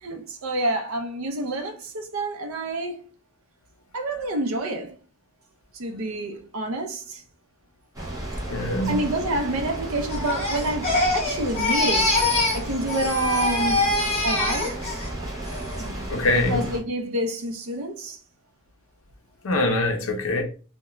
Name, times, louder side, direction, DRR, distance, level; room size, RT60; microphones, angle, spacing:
voice 1, 0.0-3.0 3.9-4.9 5.7-7.2 8.9-12.2 12.5-13.9 14.2-14.8 15.8-16.1 16.3-18.2, right 1 dB, 65° right, 0.5 m, -28 dB
sound 1, 7.9-16.8, right 1 dB, 15° right, 0.6 m, -33 dB
voice 2, 8.5-9.0 16.1-16.6 19.4-20.4, left 2 dB, 60° left, 0.5 m, -23 dB
Crying sobbing, 10.1-12.6 12.9-15.1 15.5-15.9, left 2 dB, 25° left, 0.8 m, -24 dB
2.4 x 2.1 x 2.9 m
head